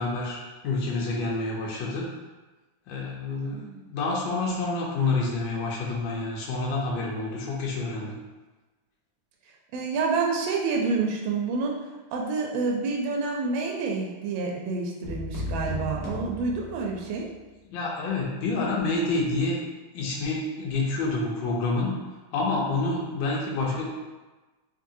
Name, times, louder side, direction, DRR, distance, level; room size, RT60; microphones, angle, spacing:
voice 1, 0.0-2.1 2.9-8.2 17.7-19.6 19.9-22.0 22.3-23.9, left 3 dB, 75° left, -3 dB, 1.3 m, -28 dB
voice 2, 3.5-3.8 9.7-11.8 12.1-17.3, right 4 dB, 80° right, -1 dB, 1.3 m, -28 dB
sound 1, 15.0-17.3, left 2 dB, 50° left, 0.8 m, -35 dB
3.9 x 2.8 x 2.6 m, 1.2 s
omnidirectional pair, 2.2 m